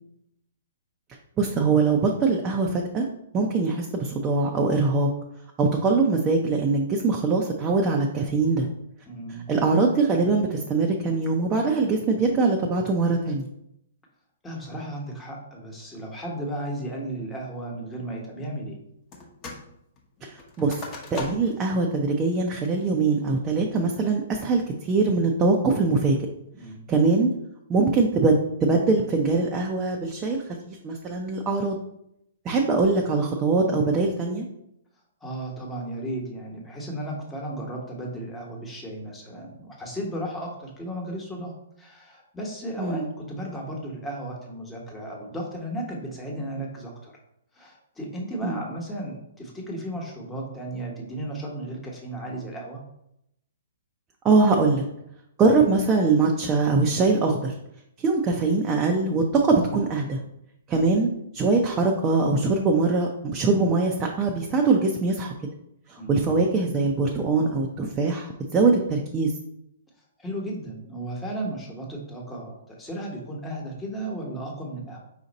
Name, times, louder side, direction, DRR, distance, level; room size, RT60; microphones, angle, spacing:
voice 1, 1.4-3.1 3.3-5.1 5.6-8.7 9.5-13.5 20.2-20.8 21.1-26.2 26.9-27.3 27.7-31.8 32.4-34.4 42.8-43.1 48.4-48.6 54.2-54.8 55.4-57.5 58.0-60.2 60.7-65.3 65.9-69.3, right 3 dB, 20° right, 0 dB, 0.5 m, -22 dB
voice 2, 9.1-9.5 14.4-18.8 26.6-26.9 35.2-47.1 47.5-52.8 66.0-66.2 70.2-75.0, right 1 dB, 10° left, -2 dB, 1.2 m, -34 dB
sound 1, 19.1-19.7 20.0-21.7 22.1-22.2 22.7-23.1 23.6-24.0, left 3 dB, 30° left, 1.0 m, -39 dB
4.9 x 2.6 x 4.1 m, 0.79 s
hypercardioid pair, 135°, 0 cm